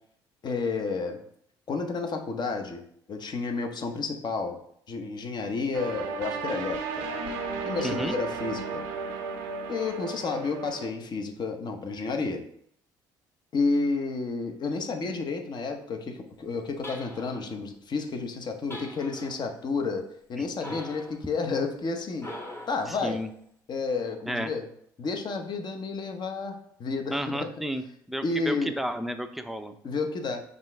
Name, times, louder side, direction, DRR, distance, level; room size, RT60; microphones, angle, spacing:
voice 1, 0.4-1.2 1.7-2.8 3.1-4.6 4.9-7.1 7.6-8.8 9.7-12.4 13.5-20.0 20.3-22.3 22.7-23.2 23.7-24.6 25.0-27.5 28.2-28.8 29.8-30.4, left 4 dB, 45° left, 5 dB, 0.8 m, -31 dB
sound 1, 5.7-10.9, right 4 dB, 90° right, 0.5 m, -34 dB
voice 2, 7.8-8.1 20.4-20.8 22.9-23.3 24.3-24.5 27.1-29.8, equal, ahead, 7 dB, 0.5 m, -32 dB
sound 2, 16.8-17.6 18.7-19.5 20.6-21.2 22.2-22.9, left 1 dB, 25° left, 1.1 m, -41 dB
5.4 x 2.6 x 3.2 m, 0.67 s
hypercardioid pair, 60°, 10 cm